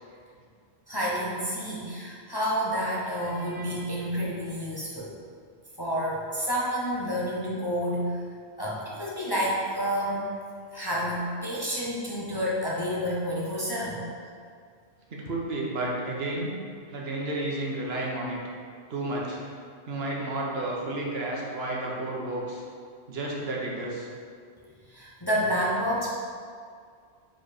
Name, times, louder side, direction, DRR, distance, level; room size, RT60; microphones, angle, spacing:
voice 1, 0.9-5.2 5.8-8.2 8.6-10.3 10.7-14.1 24.9-26.1, equal, 25° left, -6 dB, 0.8 m, -29 dB
voice 2, 15.1-16.5 16.9-18.4 18.9-19.4 19.9-22.6 23.1-24.1, right 2 dB, 65° right, -3 dB, 1.1 m, -31 dB
4.6 x 4.5 x 4.8 m, 2.1 s
omnidirectional pair, 1.2 m